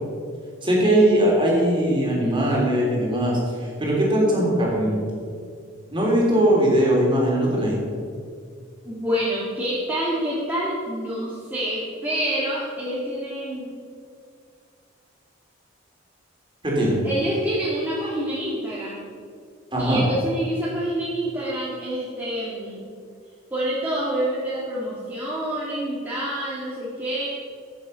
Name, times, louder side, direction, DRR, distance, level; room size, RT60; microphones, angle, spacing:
voice 1, 0.6-5.0 5.9-7.8 16.6-17.1 19.7-20.0, right 1 dB, 25° right, -3 dB, 3.3 m, -20 dB
voice 2, 8.8-13.7 17.0-19.0 19.8-22.9 23.5-27.3, right 1 dB, 10° right, -9 dB, 2.0 m, -27 dB
14.5 x 7.0 x 5.5 m, 2.2 s
head